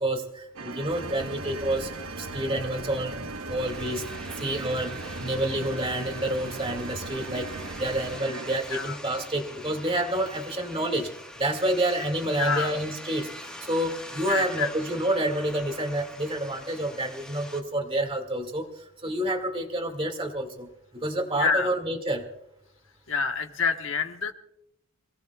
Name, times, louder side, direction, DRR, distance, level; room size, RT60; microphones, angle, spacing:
voice 1, 0.0-1.9 2.2-3.2 3.5-4.0 4.4-7.5 7.8-11.1 11.4-18.6 19.0-20.7 20.9-22.3, right 1 dB, 25° right, 4 dB, 2.1 m, -28 dB
sound 1, 0.6-8.6, right 3 dB, 90° right, 1.0 m, -39 dB
sound 2, 0.9-8.2, right 1 dB, 75° right, 1.5 m, -42 dB
sound 3, 3.6-17.6, left 1 dB, 5° left, 1.4 m, -44 dB
voice 2, 12.3-12.7 14.3-14.7 21.3-21.7 23.1-24.3, left 5 dB, 70° left, 5 dB, 1.3 m, -27 dB
27.0 x 17.5 x 2.3 m, 0.81 s
head